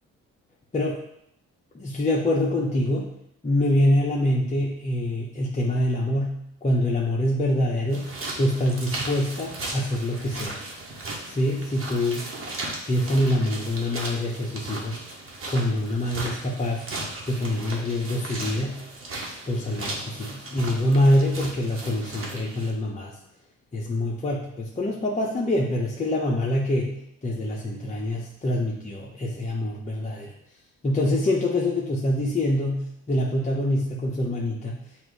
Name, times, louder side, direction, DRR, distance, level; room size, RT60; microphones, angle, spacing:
voice 1, 1.7-3.1 3.4-10.6 11.3-12.3 12.9-15.0 15.5-16.8 17.3-18.8 19.5-23.1 23.7-27.0 27.2-30.3 30.8-34.8, left 1 dB, 25° left, -4 dB, 1.0 m, -25 dB
sound 1, 7.9-22.7, right 2 dB, 45° right, 1.4 m, -36 dB
7.3 x 2.7 x 4.8 m, 0.74 s
cardioid pair, 90°, 30 cm